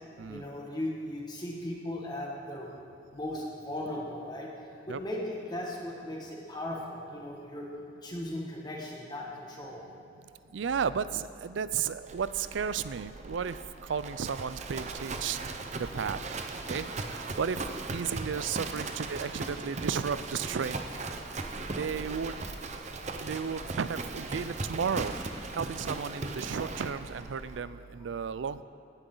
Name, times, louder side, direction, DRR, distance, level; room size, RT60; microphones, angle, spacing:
voice 1, 0.2-2.7 3.1-4.5 4.9-7.7 8.0-9.8 16.4-16.5 18.8-18.9, left 1 dB, 25° left, -2 dB, 1.7 m, -37 dB
voice 2, 10.5-13.6 13.9-15.4 15.9-16.2 16.7-17.6 17.9-20.8 21.8-22.3 23.2-25.1 25.6-28.6, right 6 dB, 85° right, 15 dB, 0.4 m, -33 dB
Livestock farm animals working animals, 12.0-27.6, right 3 dB, 40° right, 0.7 m, -38 dB
16.0 x 10.0 x 3.9 m, 2.7 s
head